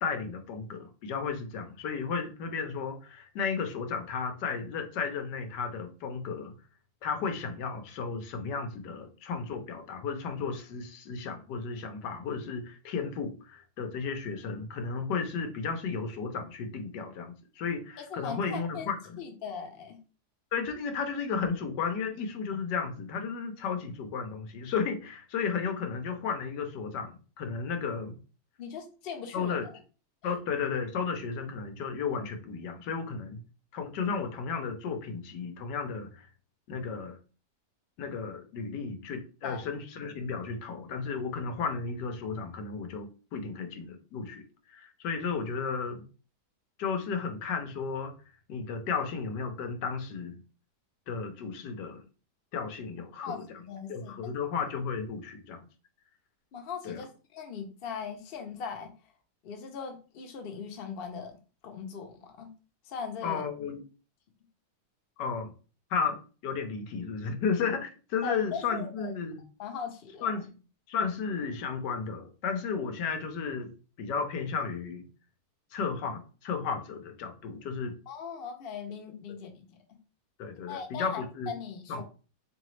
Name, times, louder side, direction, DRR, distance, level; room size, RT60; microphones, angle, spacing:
voice 1, 0.0-6.5 7.0-19.2 20.5-28.2 29.3-29.7 30.2-33.4 33.7-36.3 36.7-37.2 38.0-46.0 46.8-48.1 48.5-50.4 51.1-52.0 52.5-53.5 53.9-55.6 56.8-57.0 63.2-63.8 65.2-65.5 65.9-69.4 70.2-70.5 70.9-73.7 74.0-75.1 75.7-77.9 80.4-81.5 81.9-82.0, left 5 dB, 90° left, 6 dB, 1.4 m, -33 dB
voice 2, 18.1-18.9 19.2-20.0 28.6-29.6 39.4-39.6 53.2-54.2 56.5-58.9 59.4-61.4 61.6-62.5 62.8-63.4 68.2-69.1 69.6-70.3 78.1-80.0 80.7-82.0, left 6 dB, 50° left, 4 dB, 0.7 m, -39 dB
3.8 x 3.1 x 3.2 m, 0.35 s
omnidirectional pair, 1.8 m